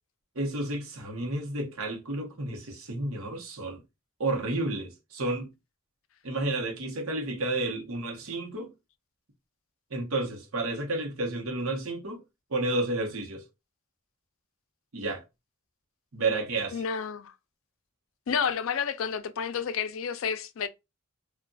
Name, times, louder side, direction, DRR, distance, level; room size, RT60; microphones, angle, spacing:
voice 1, 0.3-3.8 4.2-5.5 6.2-8.7 9.9-12.2 12.5-13.4 14.9-15.2 16.1-16.8, right 2 dB, 75° right, 1.0 m, -31 dB
voice 2, 16.7-17.3 18.3-20.7, left 7 dB, 65° left, 0.4 m, -30 dB
2.5 x 2.3 x 3.9 m
head